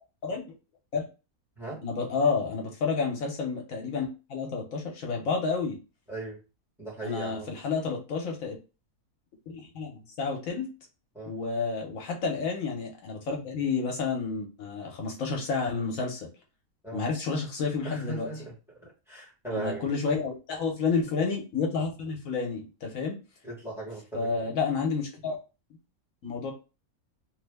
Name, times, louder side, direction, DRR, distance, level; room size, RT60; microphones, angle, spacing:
voice 1, 1.8-5.8 7.0-8.6 9.5-10.7 11.3-16.3 16.9-18.3 19.5-23.2 24.1-25.4 26.2-26.5, left 4 dB, 65° left, 1 dB, 1.3 m, -30 dB
voice 2, 6.1-6.4 6.8-7.5 11.1-11.3 16.8-17.0 17.8-18.5 18.8-19.8 23.4-24.4, right 2 dB, ahead, -4 dB, 1.0 m, -37 dB
3.2 x 2.1 x 3.3 m, 0.31 s
omnidirectional pair, 1.5 m